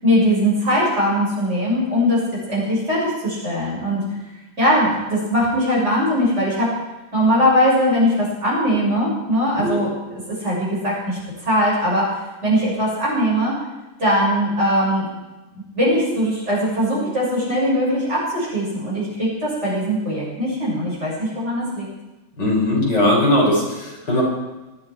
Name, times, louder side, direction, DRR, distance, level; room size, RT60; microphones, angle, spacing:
voice 1, 0.0-4.0 4.6-6.7 7.1-12.1 12.4-13.5 14.0-15.1 15.5-21.9, equal, 30° right, -6 dB, 7.0 m, -20 dB
voice 2, 22.4-24.2, left 1 dB, 55° left, -3 dB, 5.5 m, -19 dB
19.0 x 14.0 x 4.5 m, 1.1 s
omnidirectional pair, 2.2 m